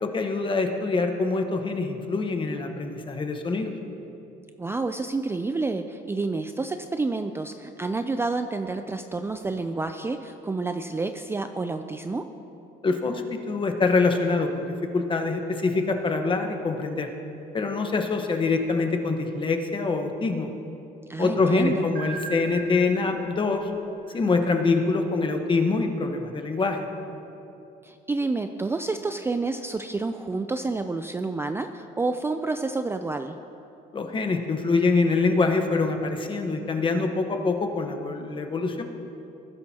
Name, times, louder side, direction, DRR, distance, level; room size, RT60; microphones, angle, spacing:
voice 1, 0.0-3.7 12.8-14.7 14.9-17.1 17.5-20.5 21.2-23.7 24.1-26.9 33.9-38.8, left 3 dB, 30° left, 5 dB, 1.1 m, -25 dB
voice 2, 4.6-12.3 21.1-21.9 27.8-33.4, right 3 dB, 15° right, 7 dB, 0.4 m, -29 dB
sound 1, 21.9-24.9, right 4 dB, 55° right, 1.3 m, -40 dB
20.0 x 11.0 x 2.9 m, 2.9 s
cardioid pair, 110°, 17 cm